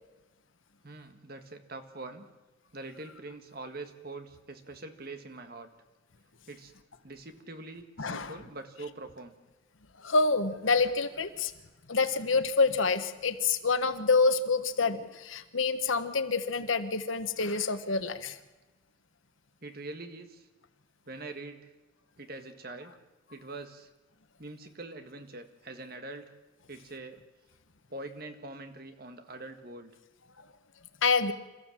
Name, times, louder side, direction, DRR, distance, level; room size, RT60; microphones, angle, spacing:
voice 1, 0.8-2.3 2.7-5.7 6.5-6.7 7.0-9.3 19.6-20.5 21.1-21.7 22.2-23.0 23.3-23.9 24.4-26.3 26.7-27.2 27.9-29.9, right 2 dB, 50° right, 7 dB, 1.8 m, -44 dB
voice 2, 8.0-8.3 10.0-11.5 11.9-18.4 31.0-31.3, left 4 dB, 85° left, 10 dB, 1.3 m, -27 dB
27.0 x 14.5 x 7.5 m, 1.1 s
head